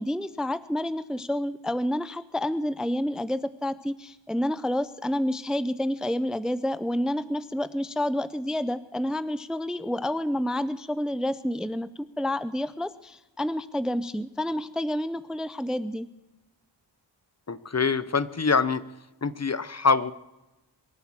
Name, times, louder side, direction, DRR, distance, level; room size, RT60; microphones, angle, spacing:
voice 1, 0.0-16.1, left 1 dB, ahead, 15 dB, 0.6 m, -29 dB
voice 2, 17.5-18.8 19.2-20.1, left 4 dB, 35° left, 16 dB, 0.7 m, -24 dB
23.0 x 7.9 x 7.4 m, 0.96 s
wide cardioid pair, 75°, 46 cm